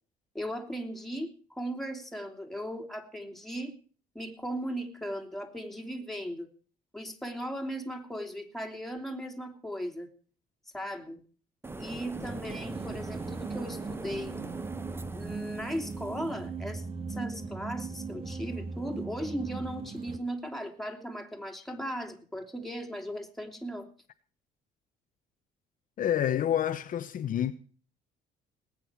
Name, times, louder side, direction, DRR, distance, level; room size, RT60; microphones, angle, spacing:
voice 1, 0.3-3.7 4.1-6.5 6.9-10.1 10.7-11.2 11.8-14.4 15.1-16.8 17.1-23.9, equal, ahead, 3.0 m, -37 dB
sound 1, 11.6-16.4, right 2 dB, 15° right, 0.9 m, -42 dB
sound 2, 12.1-20.2, right 4 dB, 35° right, 1.7 m, -39 dB
voice 2, 26.0-27.5, left 10 dB, 50° left, 1.0 m, -28 dB
19.5 x 9.2 x 4.6 m
cardioid pair, 110°, 17 cm